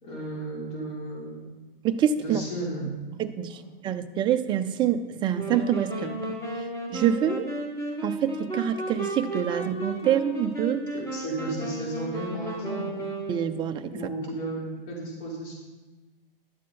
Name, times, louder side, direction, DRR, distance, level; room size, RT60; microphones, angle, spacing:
voice 1, 0.0-1.6 2.2-2.9 3.5-3.6 11.1-13.0 13.9-15.5, right 2 dB, 40° left, -4 dB, 4.5 m, -34 dB
voice 2, 1.8-2.4 3.2-6.2 6.5-7.5 8.0-10.9 13.3-14.1, right 9 dB, 15° right, 9 dB, 0.5 m, -26 dB
sound 1, 5.3-13.8, right 1 dB, 10° left, 1.7 m, -34 dB
12.0 x 7.5 x 5.6 m, 1.2 s
figure-of-eight pair, 105°, 29 cm